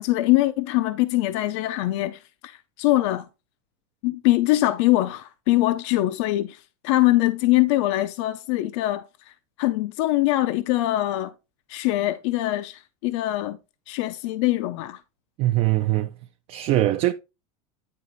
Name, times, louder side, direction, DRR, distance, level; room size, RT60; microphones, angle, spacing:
voice 1, 0.0-3.3 4.0-9.0 9.6-11.3 11.7-13.6 13.9-15.0, left 16 dB, 60° left, 0.6 m, -23 dB
voice 2, 15.4-16.1 16.5-17.1, right 15 dB, 35° right, 0.5 m, -21 dB
9.6 x 4.0 x 4.0 m
supercardioid pair, 155°, 17 cm